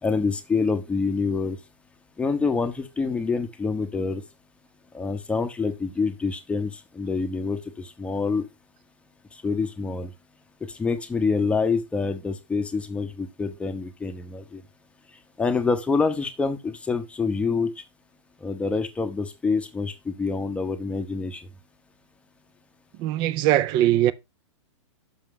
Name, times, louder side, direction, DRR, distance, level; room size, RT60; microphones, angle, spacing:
voice 1, 0.0-1.6 2.2-4.2 4.9-7.6 8.0-8.5 9.4-10.1 10.8-14.6 15.4-17.7 18.4-21.4, left 4 dB, 5° left, 0.8 m, -26 dB
voice 2, 23.0-24.1, right 13 dB, 30° right, 0.5 m, -21 dB
6.3 x 5.6 x 3.6 m
hypercardioid pair, 145°, 16 cm